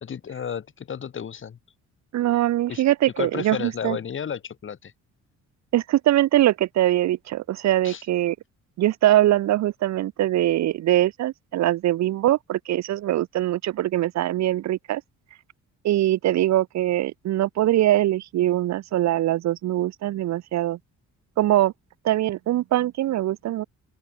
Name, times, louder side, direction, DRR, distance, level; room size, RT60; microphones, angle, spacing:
voice 1, 0.0-1.6 2.7-2.8 3.2-4.9 7.8-8.0, left 7 dB, 40° left, 1.3 m, -32 dB
voice 2, 2.1-4.0 5.7-8.4 8.8-15.0 15.8-20.8 21.4-21.7 22.0-23.6, right 14 dB, 65° right, 0.6 m, -22 dB
open air
cardioid pair, 90°, 30 cm